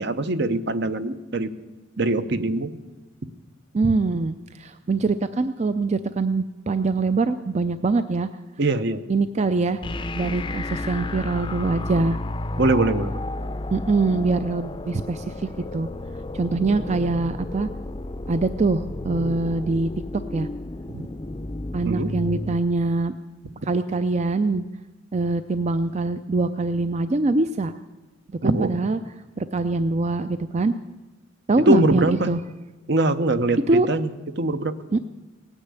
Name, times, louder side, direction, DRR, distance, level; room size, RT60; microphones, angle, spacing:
voice 1, 0.0-1.5 2.0-2.7 8.6-9.0 12.6-13.1 20.9-21.0 21.8-22.1 28.4-28.7 31.7-32.3 32.9-34.1 34.4-34.7, right 2 dB, 60° right, 11 dB, 0.9 m, -22 dB
voice 2, 3.7-8.3 9.1-9.8 10.1-12.2 13.7-15.9 16.3-17.7 18.3-20.5 21.7-23.1 23.7-24.6 25.1-27.7 28.4-29.0 29.4-30.7 31.5-32.4 33.7-33.9 34.9-35.0, right 3 dB, 35° right, 11 dB, 0.4 m, -23 dB
sound 1, 9.8-22.6, left 1 dB, 25° left, 0.5 m, -32 dB
17.5 x 9.9 x 8.3 m, 1.2 s
head